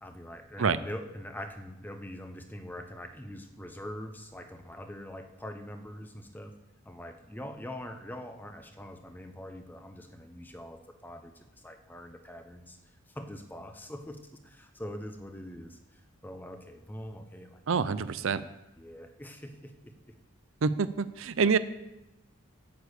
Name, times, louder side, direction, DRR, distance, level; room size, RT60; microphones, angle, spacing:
voice 1, 0.0-6.5 6.8-12.8 13.1-17.6 17.9-18.2 18.8-20.1, left 1 dB, 10° left, 7 dB, 0.8 m, -43 dB
voice 2, 17.7-18.4 20.6-21.6, right 5 dB, 70° right, 14 dB, 0.5 m, -26 dB
9.4 x 6.8 x 8.1 m, 0.97 s
head